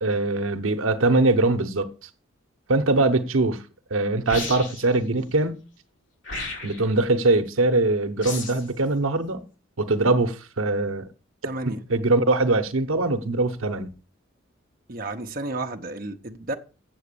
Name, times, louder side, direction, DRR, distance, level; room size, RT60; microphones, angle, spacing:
voice 1, 0.0-1.9 2.7-3.6 3.9-5.6 6.6-9.5 9.8-11.1 11.7-14.0, right 2 dB, 90° right, 0.9 m, -22 dB
sound 1, 4.3-4.9 6.2-6.9 8.2-8.7, left 3 dB, 65° left, 4.3 m, -33 dB
voice 2, 11.4-11.8 14.9-16.5, right 2 dB, 45° right, 0.9 m, -32 dB
7.9 x 7.4 x 6.8 m
head